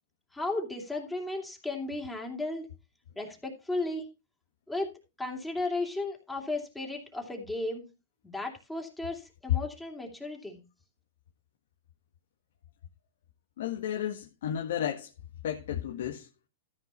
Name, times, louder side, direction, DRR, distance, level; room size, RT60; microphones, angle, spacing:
voice 1, 0.3-2.7 3.2-4.0 4.7-4.9 5.2-7.9 8.2-10.6, left 2 dB, 5° left, 2.7 m, -34 dB
voice 2, 13.6-15.1 15.4-16.3, left 10 dB, 75° left, 1.5 m, -33 dB
14.0 x 5.4 x 5.5 m
hypercardioid pair, 135°, 0 cm